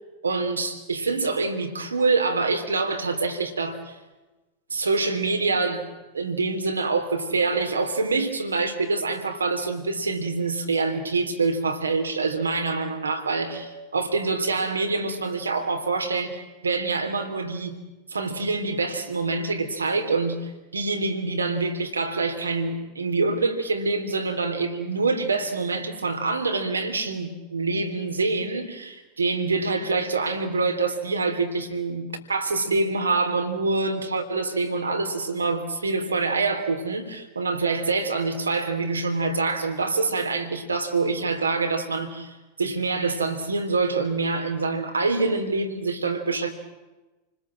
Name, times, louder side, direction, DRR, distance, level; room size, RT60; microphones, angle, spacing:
voice 1, 0.2-4.0 4.7-5.9 6.1-17.8 18.1-46.5, right 3 dB, 75° right, 3.4 m, -26 dB
29.0 x 20.5 x 7.7 m
figure-of-eight pair, 90°, 0 cm